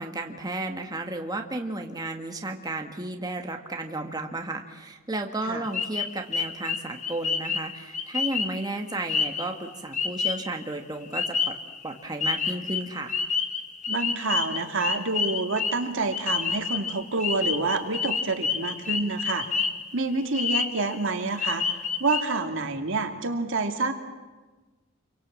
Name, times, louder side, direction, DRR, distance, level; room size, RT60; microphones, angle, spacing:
voice 1, 0.0-11.6 11.8-13.2, right 2 dB, 20° right, 3 dB, 1.7 m, -33 dB
sound 1, 5.7-10.6 11.1-11.9 12.2-19.9 20.2-21.0 21.4-22.2, left 5 dB, 35° left, 1.8 m, -29 dB
voice 2, 13.9-19.4 19.9-23.9, right 3 dB, 65° right, 5 dB, 2.5 m, -28 dB
29.0 x 24.0 x 7.6 m, 1.2 s
head